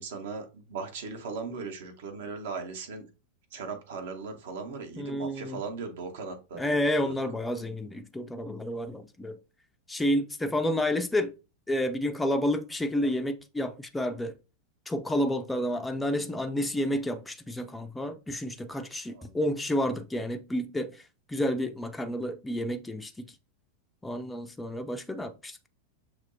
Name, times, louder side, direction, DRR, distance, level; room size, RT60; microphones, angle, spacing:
voice 1, 0.0-3.1 3.5-7.1 19.1-19.4, right 4 dB, 55° right, 0.9 m, -38 dB
voice 2, 5.0-5.6 6.5-9.4 9.9-11.3 11.7-14.3 14.9-21.0 21.3-23.3 24.0-25.7, left 1 dB, 10° left, 0.4 m, -30 dB
6.2 x 2.9 x 2.6 m
figure-of-eight pair, 90°, 0 cm